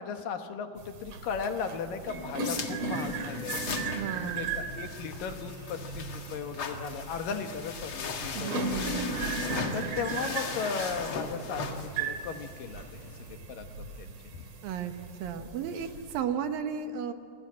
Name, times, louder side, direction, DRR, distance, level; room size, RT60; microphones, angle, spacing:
voice 1, 0.0-3.6 4.1-8.9 9.7-14.4, left 6 dB, 75° left, 6 dB, 3.1 m, -37 dB
sound 1, 0.8-16.2, right 3 dB, 45° right, 2.8 m, -37 dB
sound 2, 2.0-13.4, left 4 dB, 45° left, 2.0 m, -39 dB
voice 2, 3.9-4.5 8.3-9.1 14.6-17.1, right 7 dB, 80° right, 8 dB, 3.0 m, -34 dB
29.0 x 21.0 x 7.5 m, 2.3 s
omnidirectional pair, 4.0 m